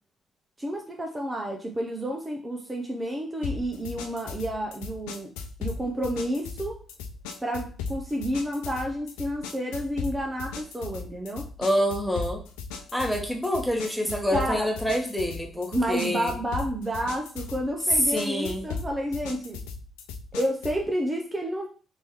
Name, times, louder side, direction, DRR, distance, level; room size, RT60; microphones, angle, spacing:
voice 1, 0.6-5.3 5.6-6.8 7.4-11.5 14.3-14.7 15.7-19.6 20.3-21.7, equal, 25° right, 1 dB, 0.8 m, -30 dB
sound 1, 3.4-20.9, left 5 dB, 80° left, 0.4 m, -37 dB
voice 2, 11.6-12.4 12.9-16.3 18.1-18.6, equal, 5° left, 1 dB, 1.2 m, -27 dB
3.6 x 3.0 x 3.1 m, 0.40 s
hypercardioid pair, 45°, 0 cm